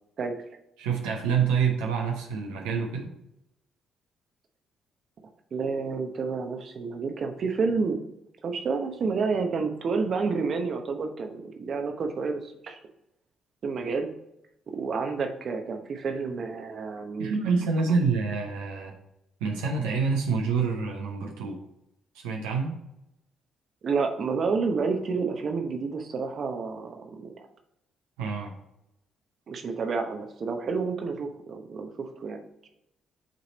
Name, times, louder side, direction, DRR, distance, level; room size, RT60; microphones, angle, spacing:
voice 1, 0.8-3.1 17.2-18.9 19.4-21.6 22.2-22.7 28.2-28.5, right 5 dB, 85° right, 1 dB, 0.7 m, -27 dB
voice 2, 5.5-8.0 8.4-12.8 13.6-14.1 14.7-17.4 23.8-27.4 29.5-32.7, right 4 dB, 55° right, 4 dB, 0.9 m, -29 dB
7.8 x 3.3 x 4.1 m, 0.85 s
hypercardioid pair, 55°, 0 cm